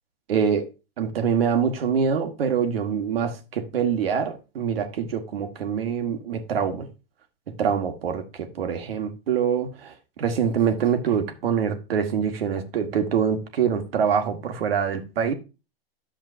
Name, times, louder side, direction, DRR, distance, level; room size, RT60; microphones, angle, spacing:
voice 1, 0.3-0.7 1.0-6.9 7.6-15.3, right 7 dB, 75° right, 1.5 m, -25 dB
10.0 x 7.1 x 2.6 m
hypercardioid pair, 110°, 30 cm